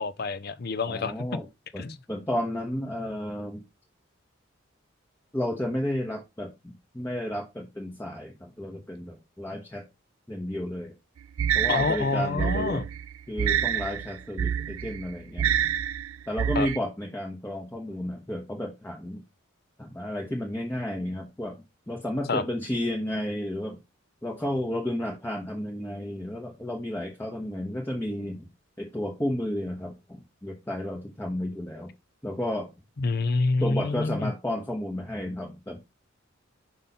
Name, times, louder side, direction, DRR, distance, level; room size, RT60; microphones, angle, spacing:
voice 1, 0.0-1.1 1.8-2.0 11.7-12.8 16.6-16.7 22.3-22.4 33.0-34.3, left 3 dB, 50° left, 0.6 m, -27 dB
voice 2, 0.9-1.5 1.7-3.6 5.3-9.9 10.3-10.9 11.5-12.8 13.3-15.5 16.3-19.2 19.8-23.8 24.2-28.5 28.8-31.9 32.2-32.7 33.6-35.8, left 1 dB, 10° left, 1.0 m, -32 dB
sound 1, 11.4-16.8, right 9 dB, 90° right, 0.4 m, -28 dB
5.5 x 5.3 x 4.2 m
head